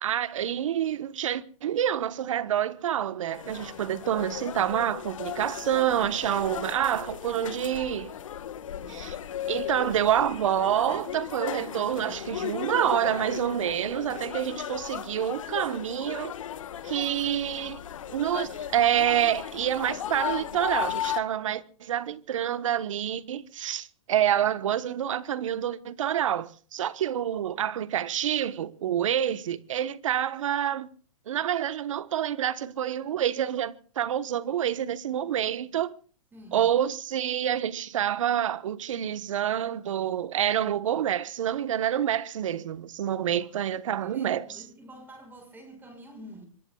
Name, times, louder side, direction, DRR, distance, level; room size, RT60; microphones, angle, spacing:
voice 1, 0.0-8.1 8.9-9.2 9.5-16.3 16.8-17.8 18.1-30.9 31.3-35.9 36.5-44.6, right 10 dB, 65° right, 1.2 m, -27 dB
sound 1, 3.3-21.2, left 10 dB, 70° left, 1.7 m, -36 dB
voice 2, 8.7-9.1 36.3-36.7 43.4-46.5, equal, 10° right, 6.2 m, -48 dB
25.5 x 23.0 x 2.4 m
hypercardioid pair, 140°, 17 cm